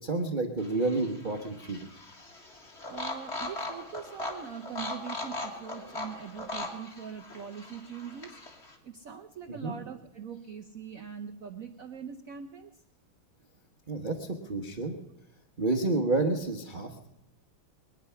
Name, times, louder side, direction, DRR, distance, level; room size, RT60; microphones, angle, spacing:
voice 1, 0.0-1.8 9.5-9.8 13.9-14.9 15.6-17.1, right 2 dB, 35° right, 2 dB, 0.9 m, -30 dB
sound 1, 0.6-8.7, left 2 dB, 35° left, 2.0 m, -39 dB
voice 2, 2.9-8.4 8.6-12.8, right 7 dB, 65° right, 6 dB, 0.8 m, -42 dB
22.5 x 9.9 x 5.7 m, 0.86 s
omnidirectional pair, 2.3 m